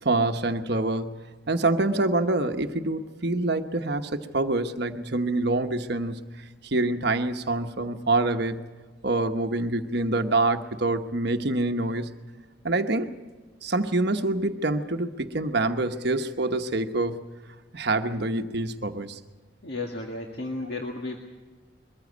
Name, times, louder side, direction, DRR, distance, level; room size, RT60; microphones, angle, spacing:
voice 1, 0.0-1.1 1.5-6.2 6.6-8.6 9.0-12.1 12.6-13.1 13.6-17.2 17.7-19.2, right 2 dB, 55° right, 6 dB, 1.1 m, -26 dB
voice 2, 19.6-21.2, left 2 dB, 55° left, 1 dB, 1.9 m, -33 dB
22.5 x 14.5 x 8.4 m, 1.4 s
head